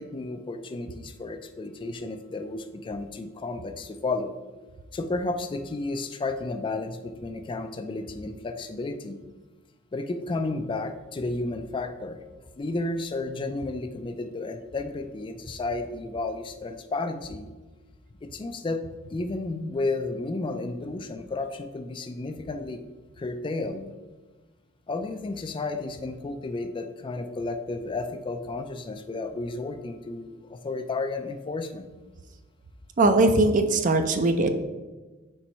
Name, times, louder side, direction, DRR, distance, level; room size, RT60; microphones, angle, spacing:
voice 1, 0.0-4.3 4.9-9.2 9.9-12.2 12.6-17.5 18.2-18.8 19.1-22.8 23.2-23.9 24.9-31.9, left 3 dB, 25° left, 7 dB, 0.3 m, -32 dB
voice 2, 33.0-34.5, right 2 dB, 40° right, 8 dB, 0.5 m, -20 dB
4.5 x 4.2 x 5.3 m, 1.2 s
head